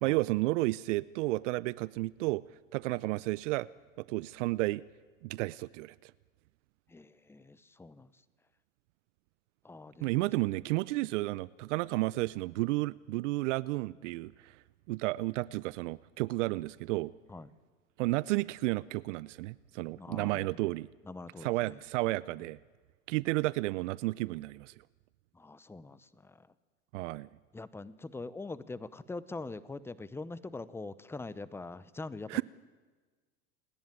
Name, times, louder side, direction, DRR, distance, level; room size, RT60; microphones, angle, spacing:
voice 1, 0.0-2.4 2.7-3.7 4.0-4.8 5.2-6.1 10.0-14.6 14.9-17.1 18.0-20.9 21.4-22.6 23.1-24.7 26.9-27.3 32.3-32.4, right 20 dB, 60° right, 0.6 m, -32 dB
voice 2, 6.9-8.1 9.6-10.3 17.3-17.5 20.0-20.7 21.0-21.8 25.3-26.5 27.5-32.4, left 3 dB, 5° left, 0.7 m, -43 dB
27.5 x 10.5 x 9.7 m
hypercardioid pair, 100°, 41 cm